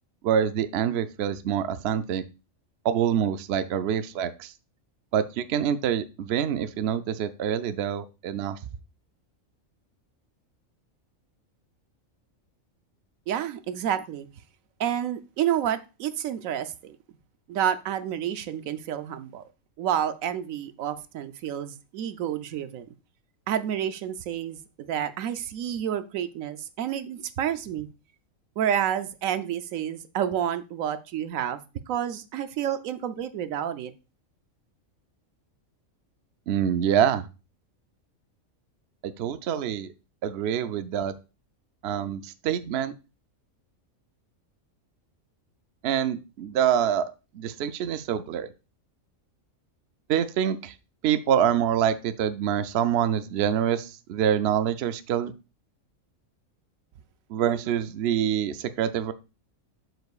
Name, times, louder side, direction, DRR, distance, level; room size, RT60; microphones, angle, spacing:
voice 1, 0.2-2.2 2.8-4.5 5.1-8.6 36.5-37.3 39.0-39.9 40.2-41.1 41.8-42.9 45.8-48.5 50.1-50.7 51.0-55.3 57.3-59.1, right 9 dB, 65° right, 11 dB, 0.7 m, -26 dB
voice 2, 13.3-14.3 14.8-17.0 17.5-19.4 19.8-22.9 23.5-27.9 28.6-31.6 31.9-33.9, right 10 dB, 80° right, 11 dB, 1.0 m, -29 dB
7.8 x 7.0 x 2.4 m, 0.30 s
omnidirectional pair, 1.4 m